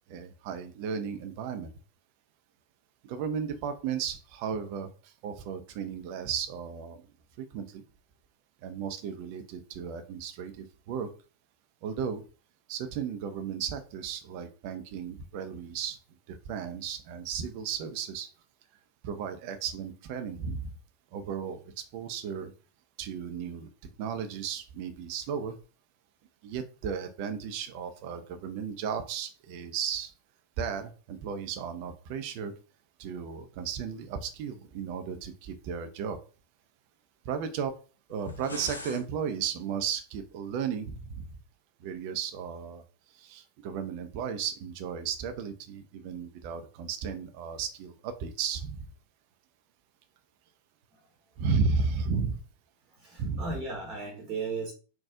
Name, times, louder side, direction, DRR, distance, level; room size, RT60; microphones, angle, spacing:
voice 1, 0.1-1.7 3.0-7.0 7.4-7.8 8.6-11.1 11.8-12.2 12.7-16.0 16.3-18.3 19.0-20.7 21.1-22.5 23.0-23.7 24.0-25.6 26.4-30.1 30.6-32.5 33.0-36.2 37.2-37.8 38.1-41.3 41.8-42.8 43.1-48.9 51.4-52.4 53.2-53.6, right 6 dB, 45° right, 7 dB, 0.5 m, -34 dB
sound 1, 38.1-39.1, left 2 dB, 80° left, 0.6 m, -41 dB
voice 2, 52.9-54.7, right 4 dB, 30° right, -1 dB, 1.1 m, -36 dB
4.1 x 2.3 x 3.5 m, 0.36 s
figure-of-eight pair, 90°, 0 cm